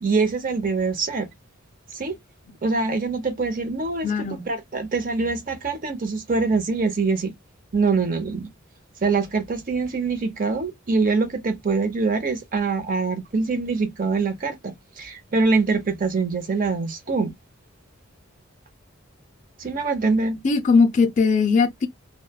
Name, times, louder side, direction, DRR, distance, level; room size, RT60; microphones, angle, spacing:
voice 1, 0.0-1.3 1.9-2.2 2.6-7.3 7.7-8.5 9.0-17.3 19.6-20.4, right 4 dB, 40° right, 0.6 m, -24 dB
voice 2, 4.0-4.5 20.4-21.9, left 4 dB, 35° left, 0.3 m, -19 dB
3.0 x 2.1 x 2.2 m
head